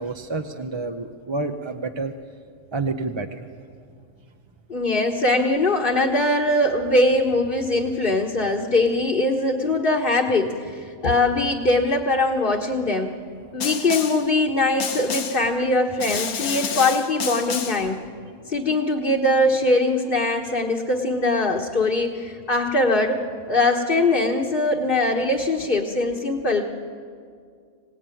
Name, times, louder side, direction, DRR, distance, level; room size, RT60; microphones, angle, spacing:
voice 1, 0.0-2.1 2.7-3.5, right 3 dB, 25° right, 5 dB, 0.6 m, -29 dB
voice 2, 4.7-13.1 13.5-18.0 18.5-23.2 23.5-26.6, left 2 dB, 40° left, -1 dB, 1.5 m, -21 dB
Snare drum, 13.6-14.3 14.8-15.5 16.0-17.9, left 7 dB, 85° left, 1.6 m, -29 dB
26.0 x 18.0 x 9.1 m, 2.2 s
omnidirectional pair, 1.5 m